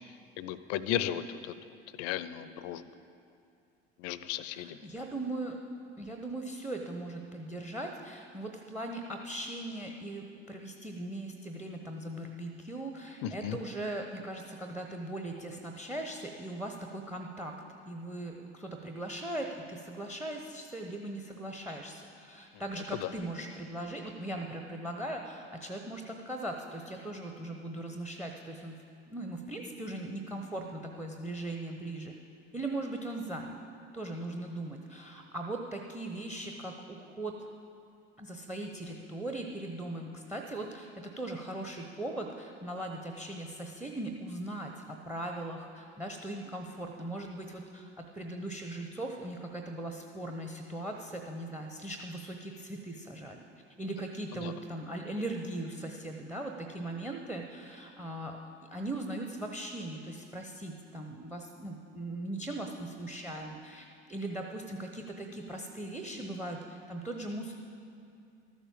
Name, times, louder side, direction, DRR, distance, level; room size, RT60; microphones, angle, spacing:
voice 1, 0.4-1.5 1.9-2.8 4.0-4.8 13.2-13.6 23.0-23.1 54.4-54.5, left 11 dB, 50° left, 15 dB, 0.6 m, -35 dB
voice 2, 4.5-5.6 6.0-17.5 17.9-32.2 32.5-33.6 33.9-37.5 38.2-53.4 53.8-58.4 58.7-67.5, right 1 dB, 5° right, 4 dB, 0.9 m, -39 dB
13.0 x 7.2 x 7.1 m, 2.5 s
figure-of-eight pair, 65°, 34 cm